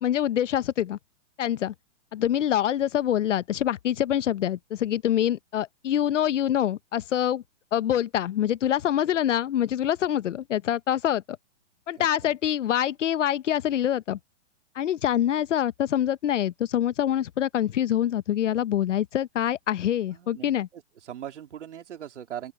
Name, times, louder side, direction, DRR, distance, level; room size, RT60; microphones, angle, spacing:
voice 1, 0.0-1.0 1.4-1.7 2.1-7.4 7.7-11.2 11.9-14.2 14.8-20.7, left 11 dB, 80° left, 0.9 m, -25 dB
voice 2, 12.0-12.3 20.1-22.5, right 10 dB, 75° right, 3.1 m, -40 dB
open air
hypercardioid pair, 160°, 36 cm